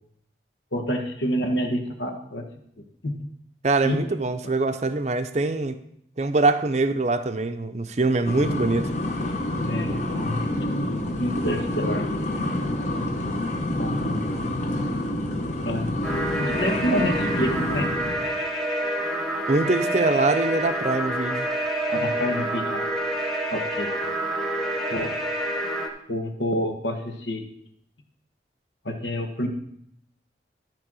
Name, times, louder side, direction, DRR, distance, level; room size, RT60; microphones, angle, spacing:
voice 1, 0.7-2.4 2.8-3.3 3.8-4.0 9.6-10.6 11.2-12.1 13.8-14.2 15.6-15.9 16.4-17.9 21.9-22.9 23.5-23.9 24.9-25.1 26.1-27.4 28.8-29.5, equal, 80° left, 4 dB, 1.4 m, -28 dB
voice 2, 3.6-5.8 6.2-8.9 19.5-21.5, right 3 dB, 40° right, 9 dB, 0.6 m, -23 dB
sound 1, 8.2-18.3, left 1 dB, 40° left, 1.1 m, -28 dB
sound 2, 16.0-25.9, right 1 dB, ahead, 1.1 m, -27 dB
13.0 x 4.5 x 6.2 m, 0.70 s
head